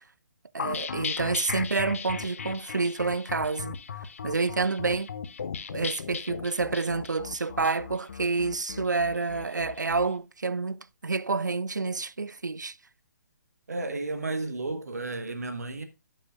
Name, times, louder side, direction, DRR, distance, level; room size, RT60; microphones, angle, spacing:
voice 1, 0.5-3.8 4.2-5.1 5.7-12.8, right 4 dB, 80° right, 0.4 m, -28 dB
sound 1, 0.6-10.1, left 6 dB, 50° left, 0.7 m, -37 dB
voice 2, 13.7-15.8, right 2 dB, 60° right, 1.2 m, -32 dB
16.0 x 5.6 x 2.4 m
figure-of-eight pair, 130°, 10 cm